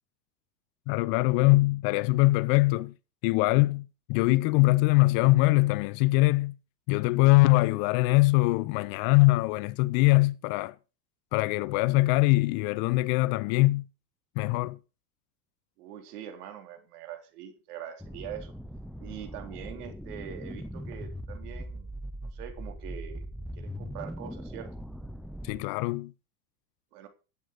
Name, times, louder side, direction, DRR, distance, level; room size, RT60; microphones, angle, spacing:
voice 1, 0.9-2.9 3.2-6.6 6.9-10.8 11.3-13.8 14.4-14.8 25.4-26.1, left 22 dB, 50° left, 0.6 m, -23 dB
voice 2, 15.8-18.5 19.0-21.9 22.3-23.2 23.6-24.7 26.9-27.1, right 10 dB, 70° right, 3.6 m, -43 dB
sound 1, 18.0-25.6, equal, ahead, 0.5 m, -40 dB
12.5 x 8.2 x 5.1 m
hypercardioid pair, 105°, 49 cm